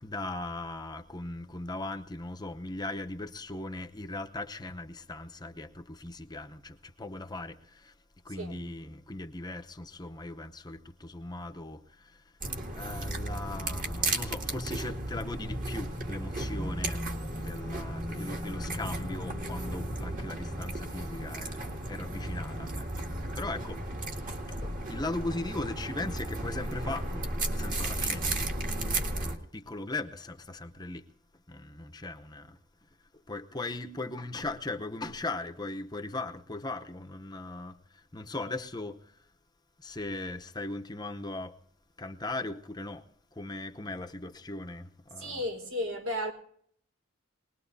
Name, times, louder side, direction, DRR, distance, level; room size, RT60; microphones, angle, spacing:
voice 1, 0.0-7.9 8.2-11.8 12.7-17.0 17.4-23.1 23.4-23.8 24.6-28.3 29.1-31.1 31.5-32.6 33.3-37.8 38.1-39.0 39.8-41.5 42.0-43.1 43.4-45.4, left 2 dB, 20° left, 0.8 m, -38 dB
sound 1, 12.4-29.4, right 2 dB, 40° right, 2.0 m, -34 dB
voice 2, 45.2-46.3, left 1 dB, 85° right, 4.4 m, -34 dB
24.0 x 20.0 x 2.7 m
head